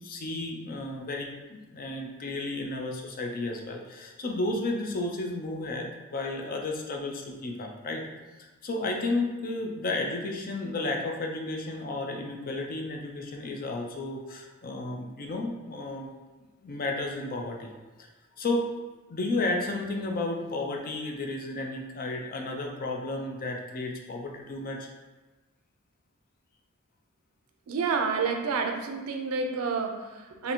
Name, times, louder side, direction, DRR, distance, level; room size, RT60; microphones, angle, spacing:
voice 1, 0.0-8.0 8.6-17.8 18.4-18.7 19.1-24.9, left 2 dB, 40° left, 2 dB, 0.5 m, -32 dB
voice 2, 27.7-30.5, right 5 dB, 80° right, 4 dB, 0.5 m, -29 dB
2.7 x 2.6 x 4.2 m, 1.2 s
head